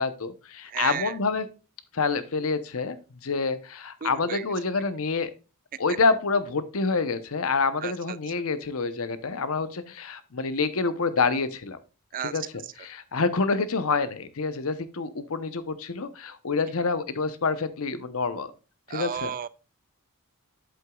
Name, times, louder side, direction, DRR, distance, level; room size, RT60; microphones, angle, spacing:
voice 1, 0.0-1.5 1.9-3.0 3.2-5.3 5.8-11.8 12.2-12.4 12.8-18.5 18.9-19.3, left 4 dB, 65° left, 0.8 m, -27 dB
voice 2, 0.7-1.1 4.0-4.4 7.8-8.2 12.1-12.5 18.9-19.5, right 8 dB, 40° right, 0.3 m, -33 dB
8.0 x 7.9 x 2.3 m
head